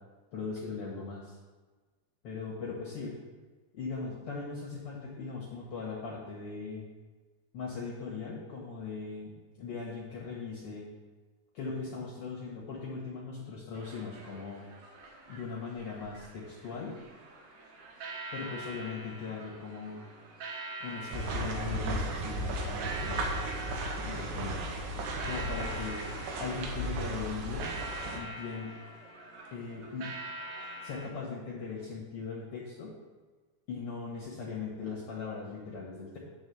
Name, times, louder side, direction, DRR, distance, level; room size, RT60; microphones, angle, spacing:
voice 1, 0.3-1.4 2.2-3.1 3.7-6.9 7.5-10.9 11.5-14.6 15.3-17.0 18.3-20.0 20.8-23.2 24.0-24.6 25.2-26.1 26.4-27.7 28.1-28.7 29.5-30.1 30.8-32.9 33.7-36.2, left 4 dB, 85° left, -4 dB, 1.3 m, -39 dB
sound 1, 13.7-31.1, right 2 dB, 70° right, 1.6 m, -45 dB
sound 2, 21.1-28.2, right 1 dB, 85° right, 3.2 m, -35 dB
10.0 x 3.4 x 7.0 m, 1.3 s
omnidirectional pair, 4.8 m